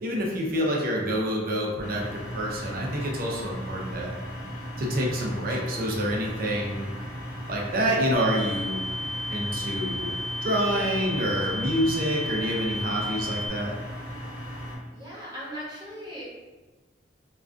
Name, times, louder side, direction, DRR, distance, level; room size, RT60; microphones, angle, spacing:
voice 1, 0.0-4.1 4.8-6.9 7.5-8.8 9.3-10.1 10.4-13.8, equal, 50° right, -2 dB, 0.5 m, -27 dB
sound 1, 1.8-14.8, equal, 55° left, 0.9 m, -37 dB
sound 2, 8.1-13.5, left 1 dB, 15° left, 1.2 m, -33 dB
voice 2, 14.9-16.2, equal, 20° right, -10 dB, 1.0 m, -38 dB
2.3 x 2.3 x 2.4 m, 1.2 s
head